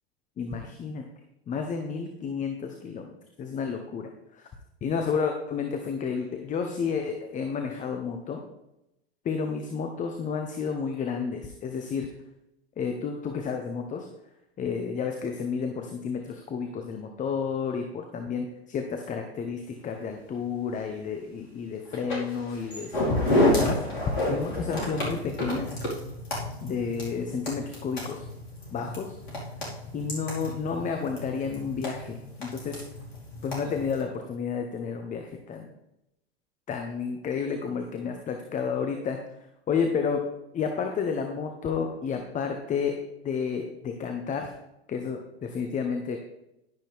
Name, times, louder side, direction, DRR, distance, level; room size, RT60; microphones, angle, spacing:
voice 1, 0.4-1.1 1.5-3.1 3.4-4.4 4.8-8.4 9.2-12.1 12.8-14.1 14.6-23.8 24.3-25.7 26.6-28.2 28.7-29.2 29.9-32.8 33.4-35.7 36.7-39.2 39.7-40.2 40.5-43.0 43.2-44.5 44.9-46.2, left 6 dB, 25° left, 4 dB, 1.3 m, -31 dB
sound 1, 21.9-34.0, left 1 dB, 70° left, 4.9 m, -30 dB
12.0 x 11.0 x 3.7 m, 0.86 s
figure-of-eight pair, 90°, 31 cm